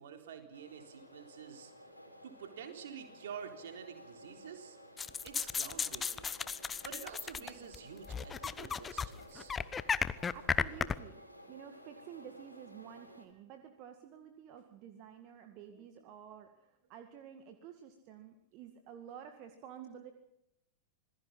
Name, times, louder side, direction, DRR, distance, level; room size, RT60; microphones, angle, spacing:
voice 1, 0.0-1.7 2.2-4.8 5.2-6.4 6.8-9.5, right 8 dB, 60° right, 5 dB, 3.8 m, -48 dB
sound 1, 0.5-13.3, equal, 90° right, 4.0 m, -55 dB
sound 2, 5.0-7.8 8.1-9.1 9.4-11.0, left 6 dB, 20° left, 0.9 m, -34 dB
voice 2, 10.3-20.1, right 9 dB, 40° right, 7 dB, 2.0 m, -51 dB
27.0 x 20.0 x 5.7 m, 0.83 s
figure-of-eight pair, 90°, 0 cm